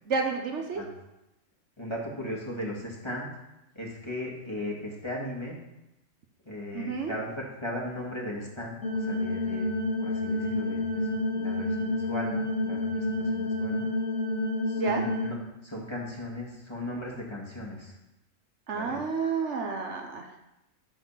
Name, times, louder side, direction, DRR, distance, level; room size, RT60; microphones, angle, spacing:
voice 1, 0.1-0.8 6.7-7.1 14.8-15.0 18.7-20.3, right 5 dB, 65° right, 3 dB, 1.2 m, -30 dB
voice 2, 1.8-3.3 3.8-5.6 6.5-9.7 10.0-13.9 14.7-15.4 15.6-17.9 18.7-19.0, left 1 dB, 20° left, -3 dB, 1.9 m, -37 dB
sound 1, 8.8-15.3, left 2 dB, 65° left, 1.8 m, -29 dB
11.5 x 4.2 x 5.6 m, 0.92 s
omnidirectional pair, 1.4 m